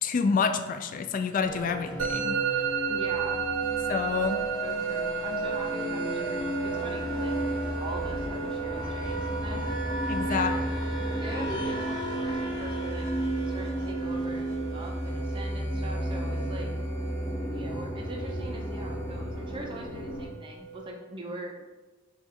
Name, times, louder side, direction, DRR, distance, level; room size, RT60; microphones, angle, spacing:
voice 1, 0.0-2.4 3.9-4.4 10.1-10.5, left 5 dB, 40° left, 8 dB, 0.3 m, -28 dB
sound 1, 1.4-20.2, equal, 25° left, 0.8 m, -33 dB
Musical instrument, 2.0-20.9, right 7 dB, 75° right, 0.7 m, -35 dB
voice 2, 2.9-3.5 4.1-7.3 7.8-9.7 10.3-10.7 11.2-13.1 13.5-16.7 17.5-21.5, right 1 dB, 25° right, 0 dB, 0.4 m, -41 dB
4.8 x 2.3 x 4.1 m, 1.2 s
head